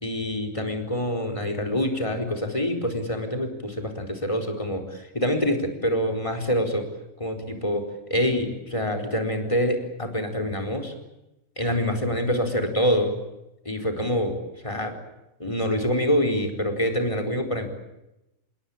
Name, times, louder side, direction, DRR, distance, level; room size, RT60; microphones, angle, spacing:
voice 1, 0.0-6.9 7.2-10.9 11.6-13.2 13.6-14.4 14.6-14.9 15.4-17.7, equal, 25° left, 4 dB, 4.5 m, -26 dB
27.5 x 21.5 x 8.8 m, 0.92 s
omnidirectional pair, 1.4 m